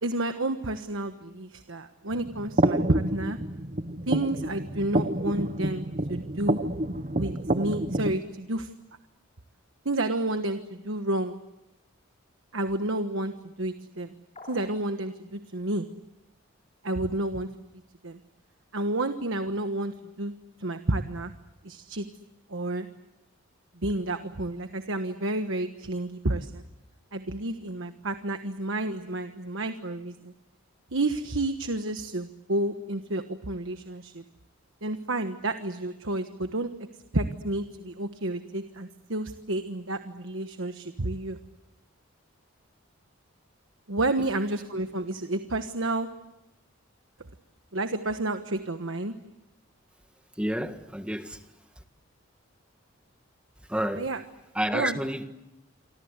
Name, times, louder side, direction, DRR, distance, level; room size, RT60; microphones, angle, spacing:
voice 1, 0.0-3.4 4.1-6.7 7.1-8.7 9.8-11.4 12.5-14.1 14.5-15.9 16.8-17.5 18.0-18.2 18.7-20.3 20.6-21.3 21.6-22.1 22.5-22.9 23.8-26.6 27.1-30.3 30.9-34.2 34.8-36.7 37.1-41.4 43.9-46.1 47.7-49.1 54.0-54.2 54.7-55.0, right 2 dB, 70° right, 8 dB, 1.3 m, -30 dB
sound 1, 2.1-8.2, right 1 dB, 35° right, 1.0 m, -29 dB
sound 2, 14.4-14.9, left 3 dB, 30° left, 4.0 m, -46 dB
voice 2, 50.3-51.4 51.8-51.9 53.6-54.1 54.5-55.2, equal, 5° right, 7 dB, 1.6 m, -30 dB
28.5 x 25.0 x 8.2 m, 0.94 s
head